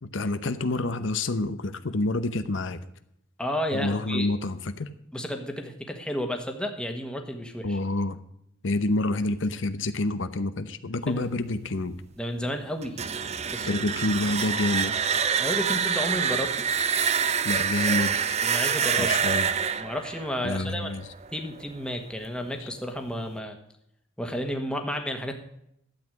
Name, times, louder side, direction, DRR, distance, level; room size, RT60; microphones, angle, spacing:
voice 1, 0.0-2.8 3.7-4.9 7.6-8.2 8.6-11.9 13.7-15.0 17.4-18.2 19.0-19.5 20.4-21.1 22.6-22.7, left 2 dB, 75° left, 11 dB, 0.8 m, -28 dB
voice 2, 3.4-4.3 5.1-7.8 11.1-11.2 12.2-13.0 13.5-13.8 15.4-16.6 18.4-19.2 19.8-20.9 21.3-23.6 24.2-25.3, equal, 5° left, 4 dB, 1.4 m, -32 dB
sound 1, 12.8-21.6, right 7 dB, 35° right, 0.6 m, -26 dB
12.5 x 8.4 x 6.4 m, 0.75 s
head